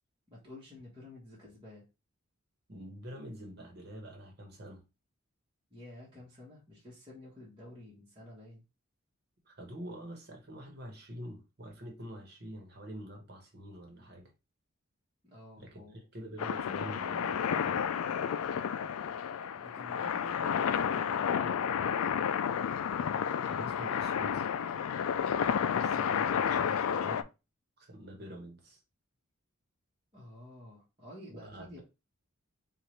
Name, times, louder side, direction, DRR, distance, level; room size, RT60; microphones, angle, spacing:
voice 1, 0.3-1.8 5.7-8.6 15.2-16.0 19.6-22.1 30.1-31.8, left 1 dB, 20° right, 1.2 m, -51 dB
voice 2, 2.7-4.8 9.4-14.3 15.6-15.8 16.1-17.9 23.4-24.5 25.7-27.2 27.8-28.8 31.3-31.8, equal, 45° right, 1.2 m, -46 dB
sound 1, 16.4-27.2, left 8 dB, 75° left, 0.3 m, -31 dB
4.5 x 2.5 x 3.2 m
head